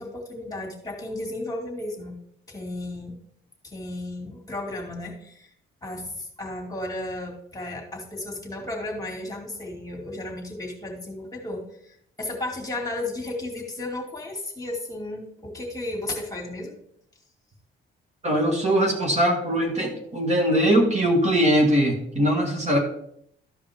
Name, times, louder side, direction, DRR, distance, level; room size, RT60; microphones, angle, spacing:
voice 1, 0.0-2.2 2.5-3.1 3.6-5.5 5.8-16.7, left 2 dB, 15° left, 1 dB, 2.5 m, -34 dB
voice 2, 18.2-22.8, equal, 35° right, 1 dB, 1.9 m, -21 dB
13.5 x 5.0 x 3.6 m, 0.69 s
cardioid pair, 90°, 20 cm